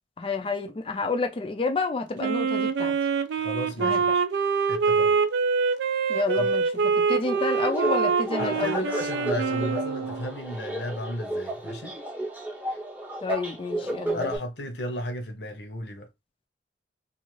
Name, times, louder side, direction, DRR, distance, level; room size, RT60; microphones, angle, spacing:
voice 1, 0.2-2.9 3.8-4.0 6.1-6.6 7.1-8.9 13.2-14.2, left 3 dB, 30° left, 0.4 m, -29 dB
Wind instrument woodwind instrument, 2.2-10.3, right 5 dB, 75° right, 0.4 m, -25 dB
voice 2, 3.4-4.2 4.7-5.1 6.4-6.5 8.4-11.9 12.7-12.8 13.8-16.1, equal, 70° left, 0.8 m, -34 dB
sound 1, 7.2-14.4, right 1 dB, 10° right, 0.6 m, -33 dB
2.5 x 2.4 x 3.0 m
head